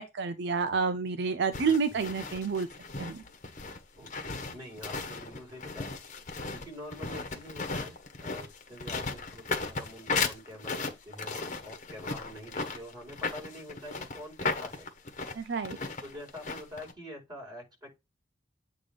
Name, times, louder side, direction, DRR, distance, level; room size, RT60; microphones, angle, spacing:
voice 1, 0.0-2.7 3.0-3.2 15.3-15.8, right 5 dB, 65° right, 0.5 m, -29 dB
sound 1, 1.5-16.9, left 4 dB, 40° left, 1.3 m, -36 dB
voice 2, 4.0-5.9 6.6-7.9 8.2-14.9 15.8-18.0, left 1 dB, 25° right, 4.7 m, -46 dB
8.3 x 3.4 x 5.2 m
head